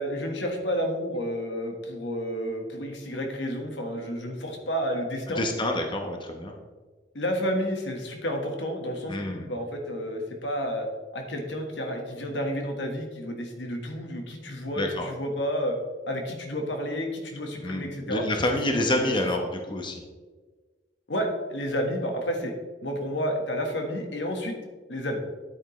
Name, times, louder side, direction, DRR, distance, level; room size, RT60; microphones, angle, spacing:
voice 1, 0.0-5.5 7.1-10.9 11.1-15.7 16.1-18.3 18.9-19.1 21.1-22.5 22.8-24.6 24.9-25.2, equal, 85° left, 3 dB, 1.5 m, -30 dB
voice 2, 5.4-6.5 9.1-9.5 14.8-15.1 17.6-20.0, left 1 dB, 25° left, 3 dB, 0.9 m, -28 dB
10.0 x 8.8 x 3.2 m, 1.4 s
head